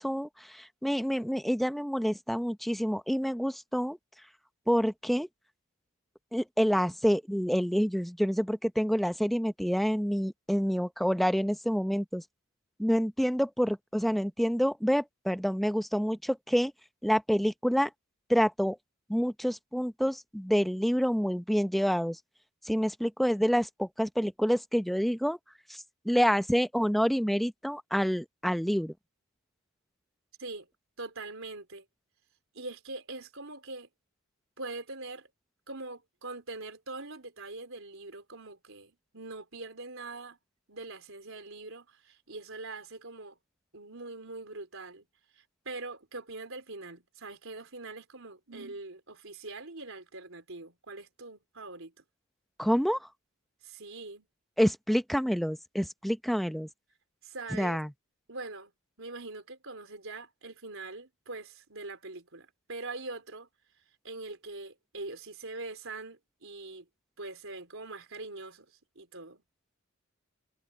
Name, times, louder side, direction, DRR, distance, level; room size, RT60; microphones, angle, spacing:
voice 1, 0.0-4.0 4.7-5.3 6.3-12.2 12.8-16.7 17.0-17.9 18.3-18.8 19.1-22.2 22.6-25.4 25.7-28.9 52.6-53.1 54.6-56.7 57.6-57.9, equal, ahead, 0.7 m, -28 dB
voice 2, 31.0-31.9 32.5-33.9 34.6-35.3 35.7-40.4 40.7-43.4 43.7-45.1 45.4-51.9 53.6-54.3 57.2-57.8 58.3-58.7 59.0-63.5 64.0-66.9 67.2-68.7 69.0-69.4, right 3 dB, 70° right, 4.4 m, -43 dB
head